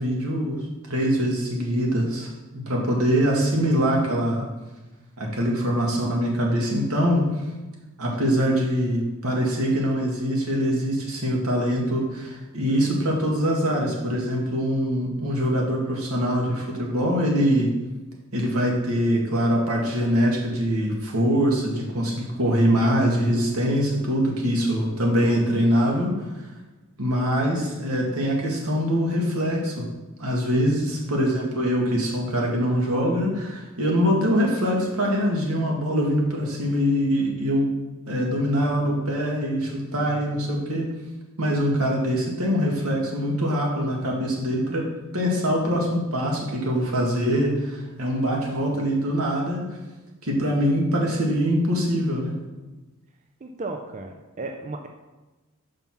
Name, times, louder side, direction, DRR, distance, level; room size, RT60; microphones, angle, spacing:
voice 1, 0.0-4.5 5.2-7.4 8.0-17.7 18.3-26.4 27.0-29.9 30.2-37.7 38.1-40.9 41.4-44.9 45.1-49.6 50.2-52.3, equal, 75° right, -1 dB, 1.9 m, -23 dB
voice 2, 3.3-3.7 31.1-31.6 53.4-54.9, right 2 dB, 35° right, 3 dB, 0.5 m, -35 dB
5.7 x 5.4 x 5.9 m, 1.1 s
head